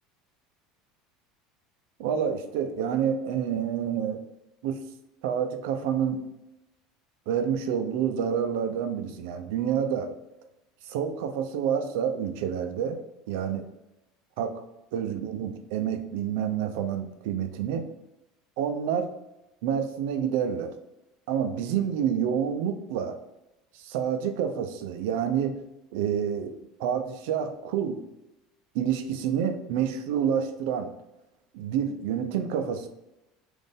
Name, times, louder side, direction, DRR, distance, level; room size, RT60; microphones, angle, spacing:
voice 1, 2.0-4.2 4.6-4.8 5.2-6.2 7.3-10.1 10.9-13.0 13.3-13.6 14.4-14.5 14.9-17.8 18.6-19.1 19.6-20.7 21.3-23.2 23.8-25.6 25.9-28.0 28.7-30.9 31.5-32.9, right 8 dB, 70° right, 7 dB, 0.5 m, -28 dB
4.2 x 2.6 x 3.4 m, 0.93 s
cardioid pair, 170°, 0 cm